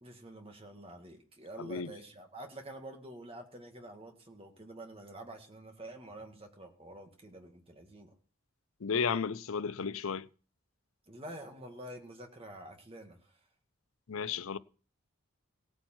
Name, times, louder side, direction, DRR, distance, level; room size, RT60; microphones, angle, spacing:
voice 1, 0.0-8.1 11.1-13.2 14.3-14.4, right 1 dB, 25° right, 1.9 m, -48 dB
voice 2, 1.6-1.9 8.8-10.3 14.1-14.6, left 6 dB, 75° left, 0.6 m, -33 dB
17.0 x 8.8 x 4.5 m
head